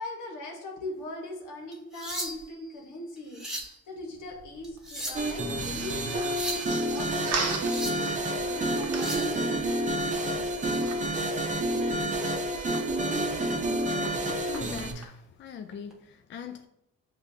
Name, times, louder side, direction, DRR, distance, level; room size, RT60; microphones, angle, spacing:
voice 1, 0.0-10.6, left 2 dB, 80° left, 0 dB, 1.2 m, -41 dB
sound 1, 1.7-2.6 3.2-3.8 4.6-5.4 6.1-6.7 7.4-8.1 8.8-9.3 11.3-11.5 12.0-12.2 12.7-12.8 14.0-14.6 15.7-15.9, right 1 dB, ahead, 1.1 m, -37 dB
sound 2, 4.1-15.1, right 4 dB, 55° right, 0.8 m, -41 dB
sound 3, 5.1-14.9, right 1 dB, 25° right, 0.7 m, -29 dB
voice 2, 14.4-16.7, left 7 dB, 40° left, 7 dB, 0.4 m, -42 dB
7.1 x 2.5 x 2.7 m, 0.78 s
cardioid pair, 90°, 30 cm